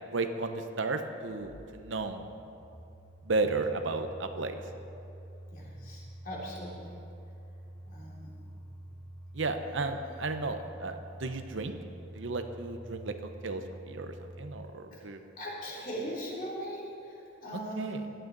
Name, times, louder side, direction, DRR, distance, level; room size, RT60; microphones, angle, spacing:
voice 1, 0.1-2.3 3.2-4.6 9.3-11.8 12.1-15.3 17.8-18.0, right 3 dB, 75° right, 7 dB, 0.8 m, -34 dB
sound 1, 1.0-14.6, right 1 dB, 15° left, 2.1 m, -48 dB
voice 2, 5.5-6.9 7.8-8.3 14.9-15.0 15.4-18.0, equal, 45° left, -5 dB, 3.1 m, -40 dB
16.5 x 11.5 x 4.0 m, 2.7 s
head